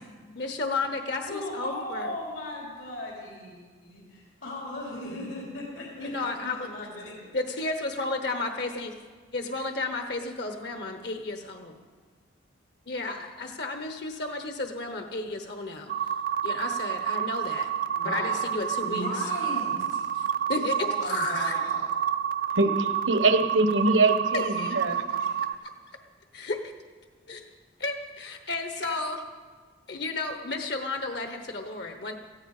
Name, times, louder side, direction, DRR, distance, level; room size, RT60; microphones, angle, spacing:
voice 1, 0.4-2.2 6.0-6.7 7.3-8.9 9.3-11.8 12.9-15.9 16.4-17.7 18.0-19.3 20.1-20.8 21.0-21.7 24.3-24.8 26.3-26.6 27.3-27.5 27.8-29.2 29.9-32.2, left 3 dB, 55° left, 6 dB, 1.0 m, -33 dB
voice 2, 1.3-7.2 17.9-18.4 18.8-20.0 20.8-21.8 24.9-25.3, left 1 dB, 85° left, -4 dB, 3.5 m, -37 dB
sound 1, 15.9-25.5, right 9 dB, 45° right, 0.4 m, -29 dB
voice 3, 22.5-25.0, right 3 dB, 80° right, 9 dB, 1.2 m, -23 dB
18.0 x 14.5 x 4.9 m, 1.5 s
head